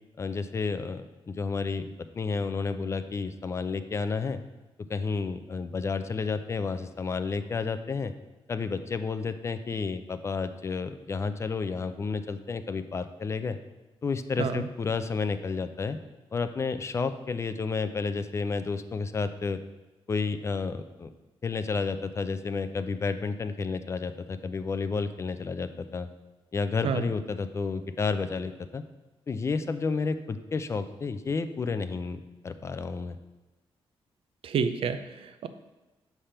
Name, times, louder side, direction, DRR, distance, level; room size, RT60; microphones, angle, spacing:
voice 1, 0.2-4.4 4.9-8.1 8.5-13.6 14.0-16.0 16.3-19.6 20.1-21.1 21.4-26.1 26.5-28.8 29.3-33.2, left 4 dB, 30° left, 10 dB, 0.4 m, -31 dB
voice 2, 34.4-35.5, right 6 dB, 70° right, 10 dB, 0.5 m, -29 dB
7.2 x 3.4 x 5.6 m, 1.1 s
wide cardioid pair, 145°, 10 cm